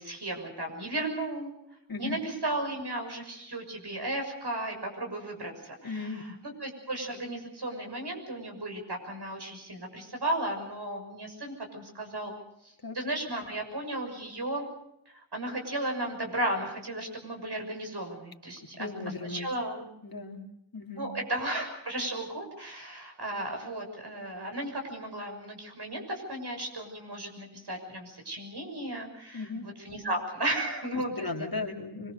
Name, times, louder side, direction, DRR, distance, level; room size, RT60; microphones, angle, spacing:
voice 1, 0.0-1.5 2.0-6.1 6.6-12.3 12.6-14.6 15.1-18.9 19.3-19.9 21.0-29.5 29.8-31.6, right 1 dB, 60° right, 4 dB, 6.5 m, -35 dB
voice 2, 5.8-6.2 12.8-13.0 18.8-19.5 20.0-20.4 20.7-21.1 29.3-29.7 30.9-32.1, left 3 dB, 50° left, 3 dB, 2.8 m, -36 dB
25.0 x 22.5 x 6.6 m, 0.78 s
wide cardioid pair, 75°, 44 cm